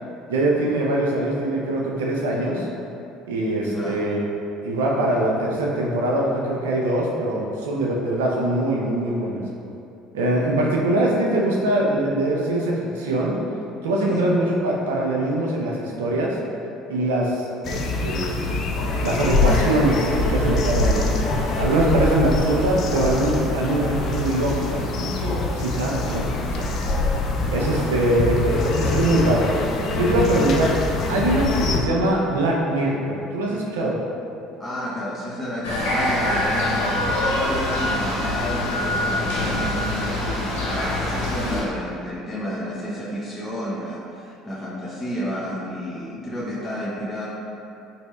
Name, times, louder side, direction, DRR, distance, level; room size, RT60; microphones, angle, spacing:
voice 1, 0.3-2.7 3.3-4.2 4.6-9.4 10.1-13.3 13.8-16.3 16.9-18.3 19.0-21.1 21.6-26.7 27.5-30.7 31.1-34.0, right 1 dB, 85° right, -2 dB, 0.4 m, -22 dB
voice 2, 3.6-4.0 14.1-14.3 34.6-47.3, equal, 15° left, -8 dB, 0.7 m, -31 dB
sound 1, 17.6-31.8, left 2 dB, 55° left, 0.4 m, -24 dB
sound 2, 18.4-25.0, right 1 dB, 40° right, 0.6 m, -39 dB
sound 3, 35.6-41.6, left 1 dB, 85° left, 0.8 m, -24 dB
4.0 x 3.0 x 2.3 m, 2.7 s
hypercardioid pair, 70°, 0 cm